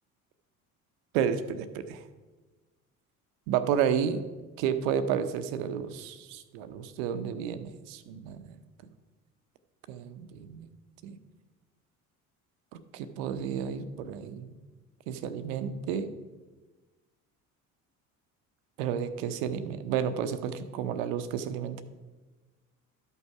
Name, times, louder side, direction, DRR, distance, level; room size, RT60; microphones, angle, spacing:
voice 1, 1.1-2.0 3.5-4.2 4.6-8.5 9.9-10.7 11.0-11.2 12.9-14.5 15.1-16.1 18.8-21.8, right 8 dB, 65° right, 11 dB, 0.8 m, -31 dB
12.5 x 5.5 x 4.7 m, 1.3 s
hypercardioid pair, 60°, 43 cm